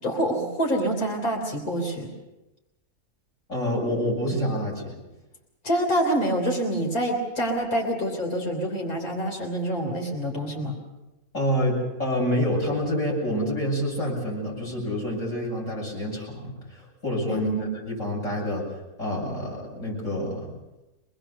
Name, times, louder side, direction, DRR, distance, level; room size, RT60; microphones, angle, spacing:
voice 1, 0.0-2.1 5.6-10.8 17.3-17.6, right 1 dB, 75° left, 1 dB, 3.9 m, -26 dB
voice 2, 3.5-4.9 11.3-18.6 19.0-20.5, equal, 55° left, -2 dB, 8.6 m, -27 dB
25.0 x 20.5 x 6.9 m, 1.0 s
omnidirectional pair, 1.5 m